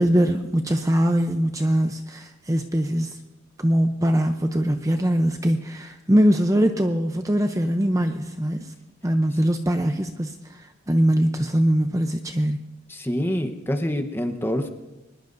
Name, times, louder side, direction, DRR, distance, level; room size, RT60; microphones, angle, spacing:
voice 1, 0.0-3.2 3.6-8.7 9.0-12.6, equal, 15° right, 6 dB, 0.7 m, -22 dB
voice 2, 12.9-14.7, equal, 10° left, 6 dB, 1.0 m, -26 dB
24.0 x 20.0 x 2.7 m, 1.0 s
head